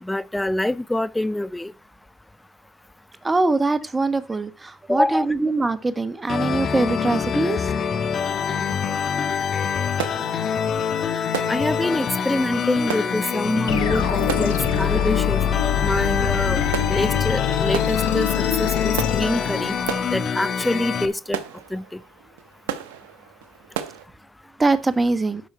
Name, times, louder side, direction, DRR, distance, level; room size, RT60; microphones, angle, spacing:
voice 1, 0.0-1.7 4.9-5.3 11.5-15.4 15.8-16.6 16.9-18.3 18.6-19.8 20.1-21.4 21.7-22.0, left 1 dB, 10° left, 0.4 m, -25 dB
voice 2, 3.2-7.7 24.6-25.4, right 3 dB, 20° right, 1.3 m, -22 dB
sound 1, 6.3-21.1, left 7 dB, 50° left, 1.5 m, -25 dB
sound 2, 10.0-24.1, right 9 dB, 85° right, 1.0 m, -36 dB
sound 3, 13.7-20.1, left 10 dB, 90° left, 1.3 m, -25 dB
12.0 x 5.6 x 4.6 m
hypercardioid pair, 70°, 0 cm